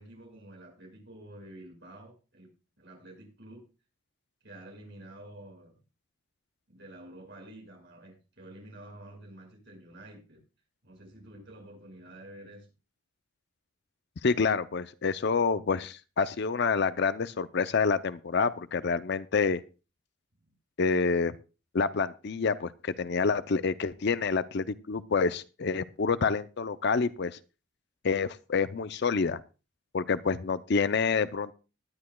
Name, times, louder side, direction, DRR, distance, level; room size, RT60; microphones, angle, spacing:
voice 1, 0.0-3.6 4.4-5.8 6.7-10.4 10.8-12.7 20.4-20.5, right 1 dB, 55° right, 0 dB, 5.6 m, -49 dB
voice 2, 14.2-19.6 20.8-21.3 21.7-27.4 28.0-29.4 29.9-31.5, left 5 dB, 50° left, 14 dB, 0.5 m, -28 dB
19.0 x 10.5 x 2.3 m, 0.32 s
head